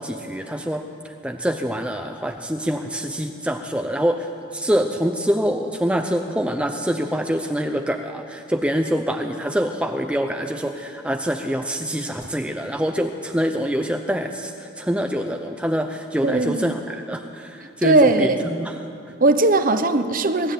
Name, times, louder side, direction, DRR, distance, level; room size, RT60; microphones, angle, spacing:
voice 1, 0.0-19.1, equal, 5° right, 4 dB, 0.7 m, -25 dB
voice 2, 16.2-16.7 17.8-18.4 19.2-20.5, right 2 dB, 45° right, 9 dB, 1.1 m, -18 dB
23.0 x 13.0 x 9.2 m, 2.5 s
head